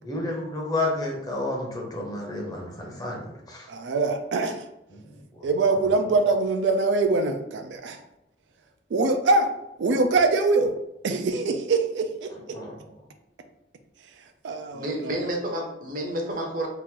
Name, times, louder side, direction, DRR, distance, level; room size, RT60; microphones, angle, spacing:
voice 1, 0.0-3.7 4.9-5.5 12.3-12.8, left 2 dB, 20° left, -2 dB, 0.7 m, -31 dB
voice 2, 3.7-4.7 5.4-8.0 8.9-9.5 9.8-10.8 11.0-12.6 14.4-15.2, right 3 dB, 85° right, 7 dB, 0.4 m, -23 dB
voice 3, 14.7-16.7, right 1 dB, 50° right, 1 dB, 0.7 m, -30 dB
2.9 x 2.5 x 3.6 m, 0.87 s
head